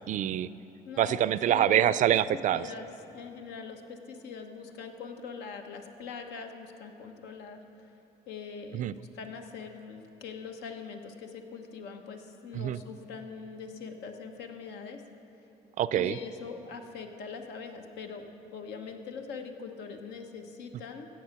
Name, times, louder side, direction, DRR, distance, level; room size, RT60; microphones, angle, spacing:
voice 1, 0.1-0.5 1.0-2.6 8.7-8.9 12.5-12.8 15.8-16.1, right 11 dB, 50° right, 16 dB, 0.4 m, -25 dB
voice 2, 0.9-1.9 2.5-7.9 8.3-15.0 15.9-21.1, left 5 dB, 85° left, 5 dB, 1.1 m, -42 dB
14.5 x 8.8 x 5.9 m, 2.9 s
cardioid pair, 110°, 17 cm